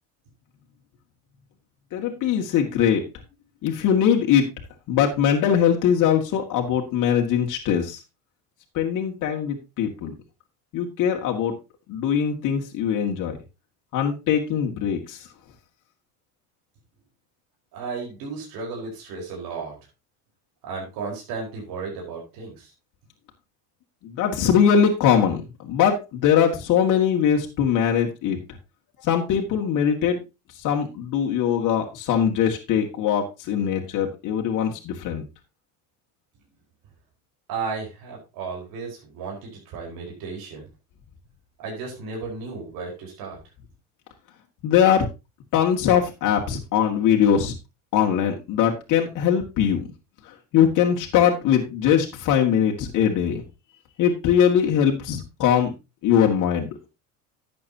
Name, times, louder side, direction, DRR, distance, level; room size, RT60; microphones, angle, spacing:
voice 1, 1.9-3.0 3.6-4.5 4.9-8.0 8.7-10.1 10.7-11.6 11.9-13.4 13.9-15.2 24.0-28.4 29.0-30.2 30.6-35.2 44.6-45.1 45.5-47.5 47.9-49.9 50.5-53.4 54.0-55.7 56.0-56.7, left 8 dB, 60° left, 1 dB, 2.1 m, -21 dB
voice 2, 17.7-19.8 20.6-22.7 37.5-40.6 41.6-43.4, right 4 dB, 70° right, -1 dB, 4.7 m, -34 dB
11.5 x 8.5 x 2.9 m, 0.26 s
supercardioid pair, 100°, 36 cm